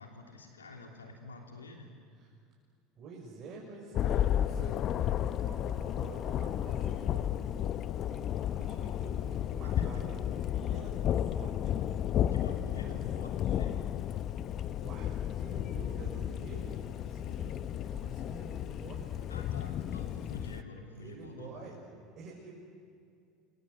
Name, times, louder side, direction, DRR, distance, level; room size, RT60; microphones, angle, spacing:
voice 1, 0.0-1.9 9.8-9.9 12.3-13.8 19.3-21.8, left 3 dB, 90° left, 2 dB, 3.0 m, -48 dB
voice 2, 2.9-11.9 12.5-13.6 14.2-14.3 14.7-19.2 20.9-21.7 22.2-22.5, right 4 dB, 45° right, -3 dB, 6.2 m, -49 dB
Thunder, 3.9-20.6, left 10 dB, 45° left, 0.9 m, -33 dB
29.0 x 25.0 x 8.2 m, 2.4 s
hypercardioid pair, 75°, 0 cm